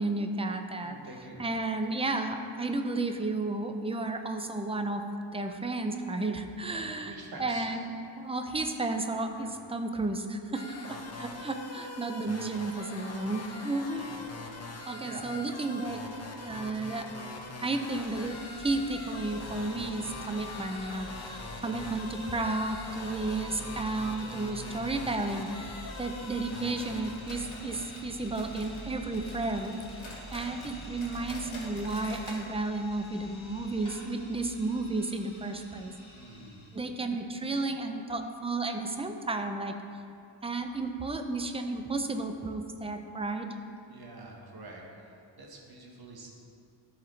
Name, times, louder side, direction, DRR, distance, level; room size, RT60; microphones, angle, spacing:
voice 1, 0.0-1.0 1.4-5.0 5.3-7.1 7.4-14.2 14.9-16.0 16.4-17.1 17.6-30.0 30.3-35.9 36.7-39.7 40.4-43.5, right 2 dB, 15° right, 6 dB, 0.3 m, -33 dB
voice 2, 0.8-1.4 6.6-7.7 9.3-9.5 14.9-15.3 36.1-36.6 43.9-46.3, right 2 dB, 50° right, -1 dB, 1.3 m, -47 dB
sound 1, 10.5-27.1, left 3 dB, 35° left, 0.7 m, -43 dB
sound 2, 17.3-37.0, right 1 dB, 10° left, 2.0 m, -47 dB
sound 3, 26.6-28.9 29.1-32.5 32.7-32.8 33.2-33.3 33.9-34.0, left 1 dB, 80° left, 1.8 m, -47 dB
13.0 x 4.8 x 3.2 m, 2.5 s
wide cardioid pair, 150°, 47 cm